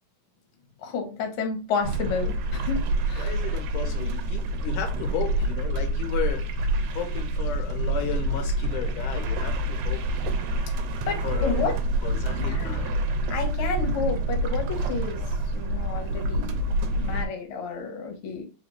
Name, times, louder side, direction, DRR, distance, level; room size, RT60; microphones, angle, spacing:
voice 1, 0.8-3.3 11.1-11.7 12.3-12.9 13.3-16.6 16.9-18.4, left 4 dB, 65° left, 1.3 m, -31 dB
sound 1, 1.8-17.3, right 1 dB, 75° right, 1.7 m, -27 dB
voice 2, 3.2-6.4 6.9-10.0 11.2-11.6 12.0-12.9, left 7 dB, 85° left, 2.4 m, -34 dB
4.9 x 2.7 x 3.1 m
omnidirectional pair, 3.5 m